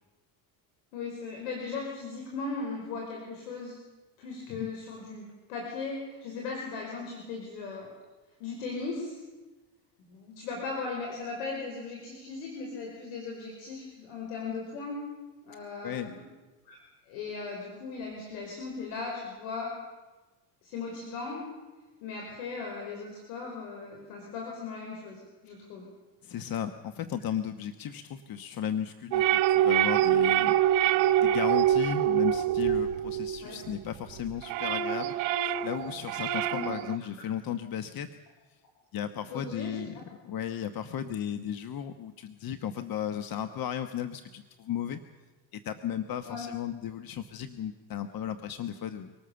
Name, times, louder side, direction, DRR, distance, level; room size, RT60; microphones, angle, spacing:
voice 1, 0.9-3.8 4.2-7.9 8.4-9.2 10.1-15.0 15.4-16.2 16.7-16.8 17.1-19.8 20.6-21.4 22.0-25.9 33.4-33.6 36.5-36.7 39.3-39.8 46.3-46.5, left 4 dB, 85° left, 0 dB, 5.4 m, -38 dB
voice 2, 15.8-16.1 26.2-30.6 30.9-38.1 38.9-45.0 45.5-49.1, left 9 dB, 45° left, 9 dB, 1.3 m, -35 dB
sound 1, 29.1-33.8 34.2-37.0, right 11 dB, 70° right, 1.1 m, -25 dB
25.0 x 19.0 x 7.1 m, 1.2 s
supercardioid pair, 85°, 48 cm